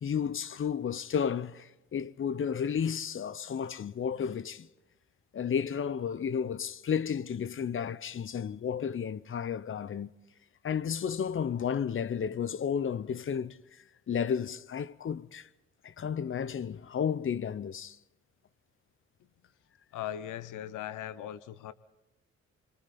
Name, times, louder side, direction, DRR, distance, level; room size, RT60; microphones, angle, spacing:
voice 1, 0.0-4.7 5.3-10.1 10.6-13.6 14.1-15.5 15.8-18.0, left 7 dB, 40° left, 0.8 m, -32 dB
voice 2, 19.9-21.7, left 11 dB, 80° left, 0.9 m, -39 dB
26.5 x 24.5 x 4.3 m
cardioid pair, 95°, 30 cm